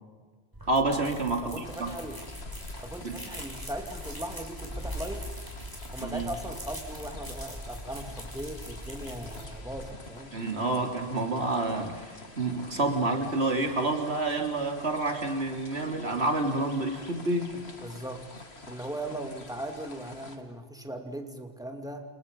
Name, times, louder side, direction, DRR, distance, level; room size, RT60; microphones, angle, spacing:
sound 1, 0.5-9.9, equal, 20° right, 6.2 m, -41 dB
voice 1, 0.7-1.9 3.0-3.2 6.0-6.3 10.3-17.6, right 2 dB, 90° right, 3 dB, 3.6 m, -29 dB
voice 2, 1.4-2.2 2.8-5.3 5.9-10.3 17.8-18.2 18.7-22.0, right 1 dB, 5° right, 4 dB, 2.6 m, -39 dB
sound 2, 1.6-20.4, left 2 dB, 85° left, 2.8 m, -47 dB
29.0 x 28.0 x 5.5 m, 1.4 s
omnidirectional pair, 1.1 m